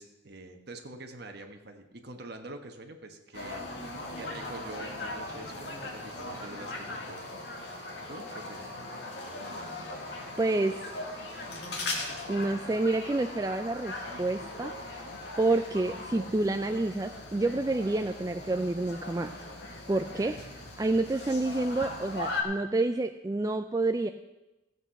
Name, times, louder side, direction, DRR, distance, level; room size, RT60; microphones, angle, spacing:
voice 1, 0.0-7.3 8.1-8.7, right 2 dB, 50° right, 5 dB, 1.3 m, -45 dB
sound 1, 3.3-22.4, left 2 dB, 55° left, 2.0 m, -39 dB
voice 2, 10.4-10.9 12.3-15.0 15.4-19.4 19.9-24.1, right 2 dB, 15° right, 7 dB, 0.3 m, -29 dB
14.5 x 8.1 x 5.8 m, 1.0 s
head